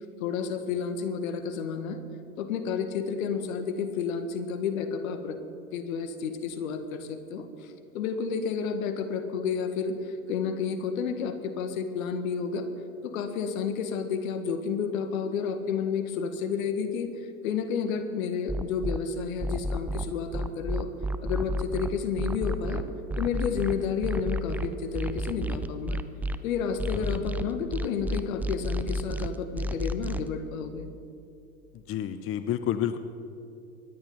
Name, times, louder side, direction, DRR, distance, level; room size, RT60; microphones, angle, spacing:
voice 1, 0.2-2.0 2.4-5.4 5.7-12.7 13.0-20.9 21.2-22.8 23.2-26.0 26.4-30.9, left 6 dB, 70° left, 8 dB, 1.7 m, -31 dB
sound 1, 18.5-19.0 19.4-26.4 26.8-30.3, equal, 5° right, 0.3 m, -30 dB
voice 2, 31.9-33.0, left 10 dB, 30° left, 11 dB, 0.8 m, -30 dB
24.0 x 10.5 x 5.5 m, 2.6 s
hypercardioid pair, 85°, 43 cm